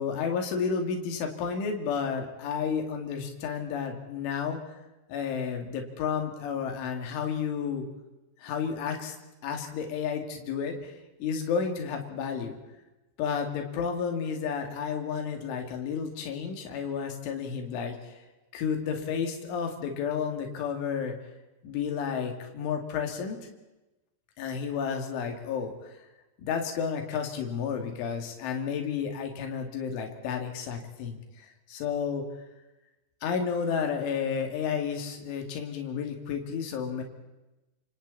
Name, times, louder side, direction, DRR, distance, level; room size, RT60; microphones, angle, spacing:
voice 1, 0.0-4.6 5.1-7.8 8.4-9.1 9.4-12.6 13.2-18.2 18.5-21.2 21.6-23.4 24.4-26.0 26.4-32.2 33.2-37.0, left 6 dB, 75° left, 4 dB, 5.0 m, -31 dB
28.0 x 27.5 x 4.2 m, 1.0 s
omnidirectional pair, 5.6 m